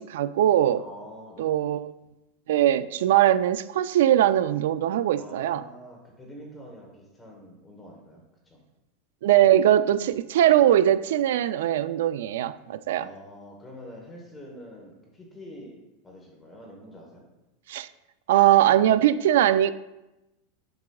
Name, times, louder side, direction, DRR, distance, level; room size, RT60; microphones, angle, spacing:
voice 1, 0.0-0.8 1.4-1.9 2.5-5.6 9.2-13.1 17.7-17.9 18.3-19.7, right 12 dB, 80° right, 0.3 m, -21 dB
voice 2, 0.7-1.6 5.1-8.6 12.9-17.3, equal, 10° left, 1.1 m, -46 dB
7.8 x 6.9 x 2.3 m
supercardioid pair, 165°, 0 cm